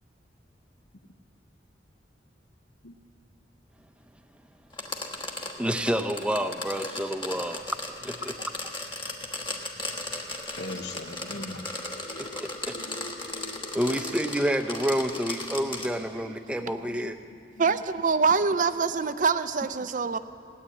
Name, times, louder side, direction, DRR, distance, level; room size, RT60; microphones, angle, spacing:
sound 1, 4.7-15.9, left 2 dB, 30° left, 1.2 m, -36 dB
voice 1, 5.6-7.6 8.0-8.3 12.2-12.8 13.7-17.2, equal, 5° right, 8 dB, 0.6 m, -29 dB
voice 2, 10.0-14.2 15.1-15.9 16.3-17.0 17.6-17.8 18.7-18.9, left 2 dB, 75° left, 8 dB, 0.9 m, -43 dB
voice 3, 17.6-20.2, right 5 dB, 45° right, 12 dB, 0.5 m, -24 dB
17.0 x 9.9 x 8.3 m, 2.4 s
head